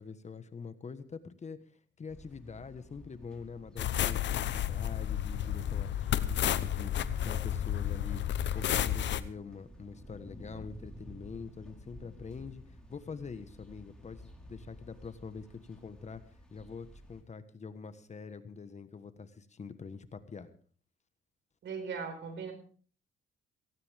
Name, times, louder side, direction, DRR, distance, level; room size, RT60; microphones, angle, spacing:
voice 1, 0.0-1.6 2.0-8.2 8.5-16.2 16.5-20.5, left 5 dB, 35° left, 11 dB, 1.4 m, -45 dB
sound 1, 2.1-17.2, equal, 5° left, 4.3 m, -53 dB
sound 2, 3.8-9.2, left 10 dB, 65° left, 0.9 m, -31 dB
voice 2, 21.6-22.5, right 5 dB, 70° right, 8 dB, 4.7 m, -38 dB
18.0 x 16.5 x 3.6 m, 0.43 s
cardioid pair, 90°, 20 cm